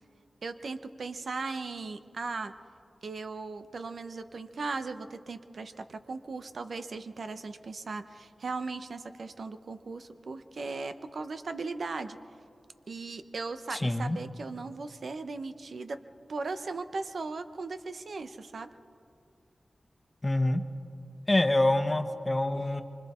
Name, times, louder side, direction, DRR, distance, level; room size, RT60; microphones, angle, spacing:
voice 1, 0.4-2.5 3.0-12.2 12.9-16.0 16.3-18.7, right 3 dB, 75° right, 9 dB, 0.9 m, -37 dB
voice 2, 13.7-14.2 20.2-20.6 21.3-22.8, left 1 dB, 25° left, 7 dB, 1.2 m, -26 dB
25.5 x 25.0 x 4.4 m, 2.6 s
wide cardioid pair, 85°, 0 cm